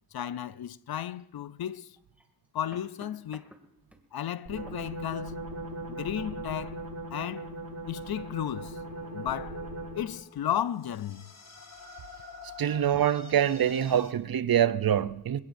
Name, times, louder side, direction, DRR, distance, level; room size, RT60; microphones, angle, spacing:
voice 1, 0.1-2.0 2.5-3.4 4.1-5.4 5.9-7.5 7.9-8.8 9.1-9.6 9.9-11.3, left 10 dB, 85° left, 0.6 m, -34 dB
sound 1, 1.2-1.3 2.0-4.1 4.6-5.0 5.5-5.7, equal, 5° right, 2.3 m, -53 dB
sound 2, 4.5-10.2, right 1 dB, 90° right, 7.4 m, -39 dB
sound 3, 8.2-14.1, left 5 dB, 45° left, 1.6 m, -49 dB
voice 2, 12.6-15.4, right 9 dB, 75° right, 0.7 m, -25 dB
26.0 x 17.0 x 2.6 m
cardioid pair, 50°, 36 cm